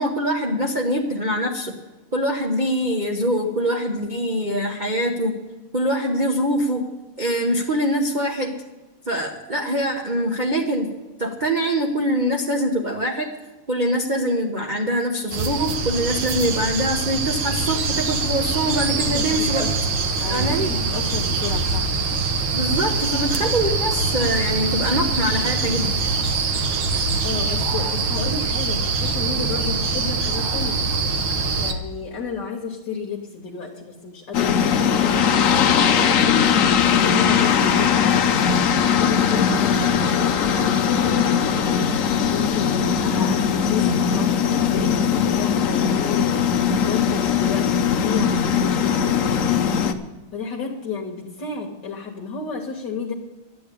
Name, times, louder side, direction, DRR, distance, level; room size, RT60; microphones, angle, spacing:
voice 1, 0.0-1.7 2.1-5.4 5.7-6.9 7.2-8.7 9.1-10.9 11.2-13.3 13.7-19.6 20.3-20.7 22.5-26.0, equal, 35° right, 1 dB, 0.7 m, -23 dB
sound 1, 15.3-31.7, right 4 dB, 65° right, 1.5 m, -23 dB
voice 2, 19.1-21.9 27.2-30.8 31.6-36.0 36.7-49.4 50.3-53.1, left 5 dB, 55° left, 0 dB, 1.7 m, -32 dB
sound 2, 34.3-49.9, left 7 dB, 75° left, 0.7 m, -19 dB
11.5 x 8.5 x 8.4 m, 1.1 s
omnidirectional pair, 2.4 m